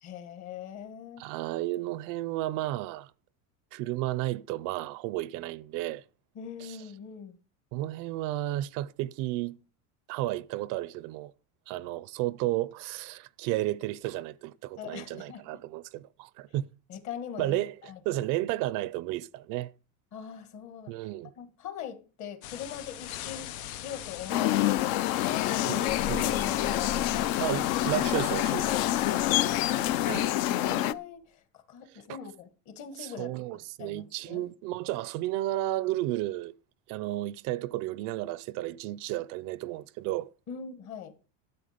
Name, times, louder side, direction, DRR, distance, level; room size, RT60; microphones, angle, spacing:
voice 1, 0.0-1.3 6.4-7.4 14.8-15.6 16.9-18.3 20.1-20.9 21.4-24.7 25.2-25.7 26.0-27.4 30.2-34.5 40.5-41.1, left 8 dB, 45° left, 1.8 m, -42 dB
voice 2, 1.2-3.1 3.7-6.0 6.6-6.8 7.7-9.6 10.1-11.3 11.7-16.7 17.4-17.7 18.1-19.7 20.9-21.3 25.6-26.3 27.4-28.8 30.1-30.3 31.9-32.2 33.0-36.5 36.9-40.3, right 16 dB, 55° right, 0.5 m, -33 dB
sound 1, 22.4-30.3, left 13 dB, 85° left, 1.0 m, -40 dB
sound 2, 24.3-30.9, left 14 dB, 60° left, 0.6 m, -27 dB
sound 3, 25.9-30.8, left 3 dB, 20° left, 0.8 m, -44 dB
13.0 x 8.0 x 5.1 m
cardioid pair, 170°, 39 cm